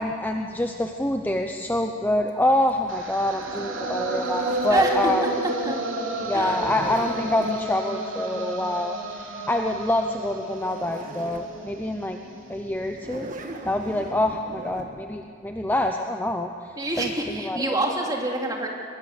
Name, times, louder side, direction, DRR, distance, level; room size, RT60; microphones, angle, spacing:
voice 1, 0.0-5.2 6.2-12.2 12.5-13.3 13.6-16.5 17.0-17.8, left 1 dB, 10° left, 4 dB, 0.7 m, -26 dB
Zipper (clothing), 2.3-5.0 6.3-7.6 10.2-10.3 10.5-11.5 12.0-12.1 12.9-14.9, right 1 dB, 40° right, 1.9 m, -39 dB
sound 1, 2.9-13.0, right 2 dB, 75° right, 3.2 m, -32 dB
voice 2, 4.7-5.1 5.7-5.8 6.3-6.6 16.8-18.7, right 2 dB, 20° right, 0 dB, 2.8 m, -26 dB
23.0 x 21.0 x 8.1 m, 2.2 s
head